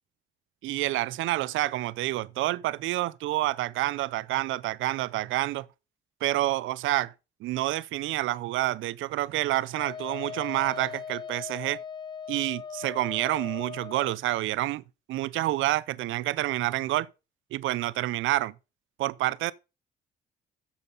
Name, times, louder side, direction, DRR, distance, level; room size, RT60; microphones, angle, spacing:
voice 1, 0.6-5.7 6.2-7.1 7.4-11.8 12.3-14.8 15.1-17.1 17.5-18.5 19.0-19.5, right 16 dB, 85° right, 0.5 m, -28 dB
Wind instrument woodwind instrument, 9.8-14.2, left 6 dB, 25° left, 0.3 m, -39 dB
9.6 x 7.2 x 3.9 m
cardioid pair, 90°, 20 cm